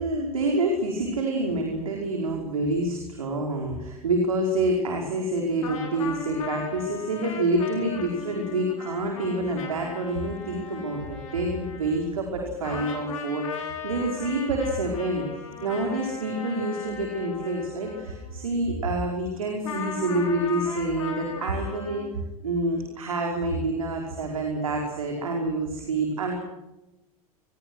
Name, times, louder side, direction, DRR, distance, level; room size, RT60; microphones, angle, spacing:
voice 1, 0.0-15.3 15.6-26.4, right 2 dB, 70° right, 1 dB, 5.2 m, -27 dB
sound 1, 5.6-12.4 12.6-18.6 19.6-22.0, left 6 dB, 65° left, 6.5 m, -37 dB
27.5 x 21.5 x 6.5 m, 1.0 s
figure-of-eight pair, 85°, 18 cm